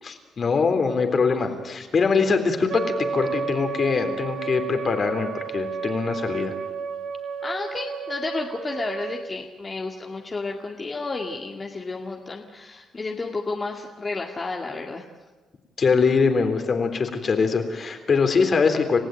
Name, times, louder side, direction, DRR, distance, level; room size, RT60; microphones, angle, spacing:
voice 1, 0.0-6.5 15.8-19.0, left 5 dB, 45° left, 6 dB, 3.6 m, -23 dB
Wind instrument woodwind instrument, 2.7-9.2, right 6 dB, 65° right, 1.8 m, -32 dB
voice 2, 7.4-15.0, left 3 dB, 30° left, 0 dB, 2.2 m, -31 dB
30.0 x 15.5 x 9.2 m, 1.3 s
cardioid pair, 90°, 0 cm